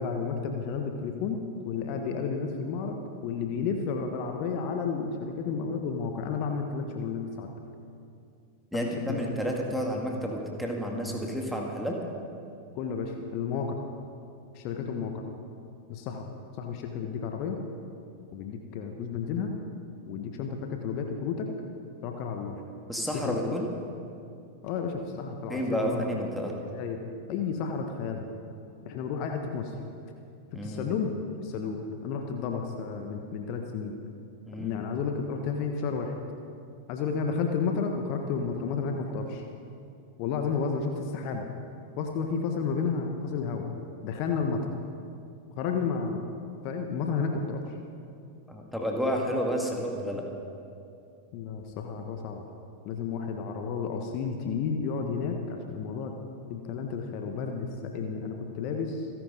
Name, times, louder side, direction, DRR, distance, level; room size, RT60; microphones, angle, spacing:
voice 1, 0.0-7.5 8.7-9.3 12.7-13.8 14.5-15.2 15.9-16.3 16.6-17.6 18.3-19.5 20.1-21.5 22.0-22.6 23.1-23.4 24.6-26.0 26.6-27.0 27.3-28.3 28.8-29.7 30.6-31.1 31.4-34.0 34.6-36.2 36.9-39.4 40.2-41.5 42.0-43.7 44.0-44.7 45.6-46.3 46.6-47.8 51.3-52.4 52.8-56.1 56.5-59.1, left 5 dB, 45° left, 4 dB, 1.3 m, -32 dB
voice 2, 8.7-12.0 22.9-23.7 25.5-26.5 30.5-30.9 34.5-34.8 48.5-50.3, equal, ahead, 0 dB, 2.2 m, -31 dB
27.5 x 11.0 x 4.0 m, 2.5 s
figure-of-eight pair, 90°, 0 cm